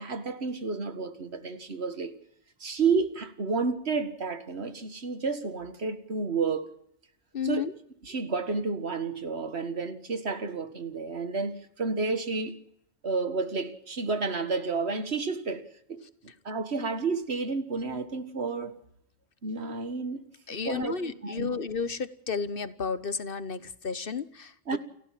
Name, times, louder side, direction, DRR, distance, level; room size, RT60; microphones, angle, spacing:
voice 1, 0.0-2.1 2.6-6.8 7.4-7.7 8.0-12.6 13.0-16.0 16.4-18.8 19.4-20.2 20.6-21.5 24.7-24.8, right 4 dB, 75° right, 2.0 m, -31 dB
voice 2, 7.3-7.7 20.5-24.5, left 5 dB, 60° left, 1.3 m, -32 dB
29.0 x 14.5 x 7.6 m
omnidirectional pair, 1.1 m